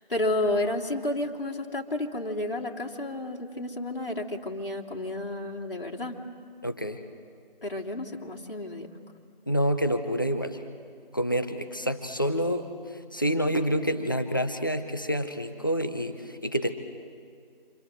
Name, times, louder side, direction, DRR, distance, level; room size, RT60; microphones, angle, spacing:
voice 1, 0.1-6.2 7.6-8.9, left 1 dB, 70° left, -1 dB, 3.3 m, -31 dB
voice 2, 6.6-7.0 9.5-10.6 11.1-16.8, equal, 20° left, 8 dB, 0.9 m, -28 dB
28.0 x 27.0 x 7.8 m, 2.2 s
figure-of-eight pair, 175°, 29 cm